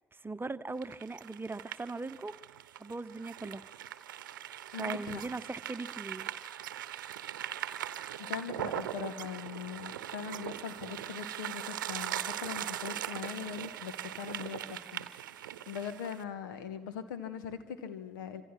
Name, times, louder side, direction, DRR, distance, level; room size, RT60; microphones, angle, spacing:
voice 1, 0.1-2.3 2.7-3.6 4.8-6.3, right 3 dB, 20° right, 13 dB, 1.0 m, -39 dB
sound 1, 0.8-16.2, right 11 dB, 80° right, 0.8 m, -40 dB
voice 2, 4.7-5.2 8.2-15.1 15.7-18.4, left 7 dB, 75° left, 12 dB, 1.7 m, -41 dB
26.5 x 26.0 x 6.0 m, 1.0 s
figure-of-eight pair, 50°, 11 cm